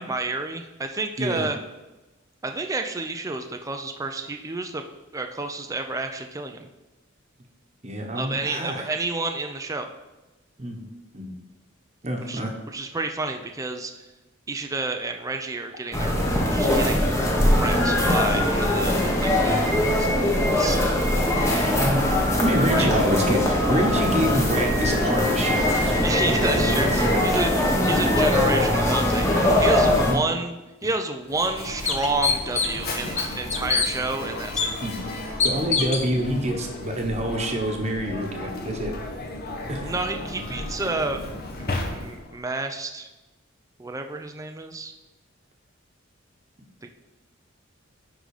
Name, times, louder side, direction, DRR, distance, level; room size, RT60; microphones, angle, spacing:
voice 1, 0.0-1.6 2.4-4.8 5.1-6.7 8.1-9.9 12.3-12.4 12.7-13.9 14.5-16.2 16.5-17.1 17.4-21.2 22.7-22.9 26.0-34.7 39.8-41.2 41.6-43.1 43.8-44.9 46.8-46.9, right 3 dB, 15° right, 5 dB, 0.5 m, -30 dB
voice 2, 1.2-1.5 7.8-8.9 10.6-11.3 12.0-12.5 21.8-22.0 22.4-27.2 30.1-30.2 34.8-35.0 35.4-38.9 39.7-40.0, right 1 dB, 35° right, 3 dB, 1.2 m, -27 dB
sound 1, 15.9-30.1, left 1 dB, 15° left, 1.2 m, -21 dB
sound 2, 30.8-30.9 31.4-31.5 31.8-32.8 33.2-33.9 34.6-34.7 35.4-36.1, left 5 dB, 35° left, 0.9 m, -23 dB
Mechanisms, 31.2-42.4, left 2 dB, 50° left, 1.3 m, -34 dB
10.0 x 3.9 x 4.9 m, 1.1 s
head